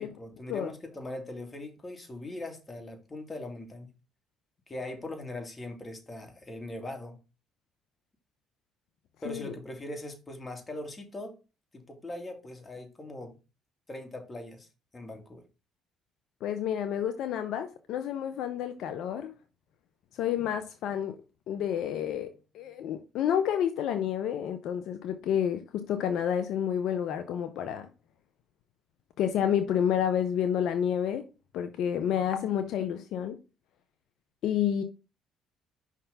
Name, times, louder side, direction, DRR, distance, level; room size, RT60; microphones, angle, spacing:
voice 1, 0.0-3.9 4.7-7.2 9.2-11.3 11.7-13.4 13.9-14.7 14.9-15.4, left 1 dB, 25° left, 2.2 m, -40 dB
voice 2, 16.4-19.3 20.1-21.2 21.5-22.3 22.5-27.9 29.2-31.2 31.5-33.4 34.4-34.8, left 9 dB, 70° left, 0.7 m, -29 dB
5.5 x 3.7 x 5.4 m
supercardioid pair, 70°, 0 cm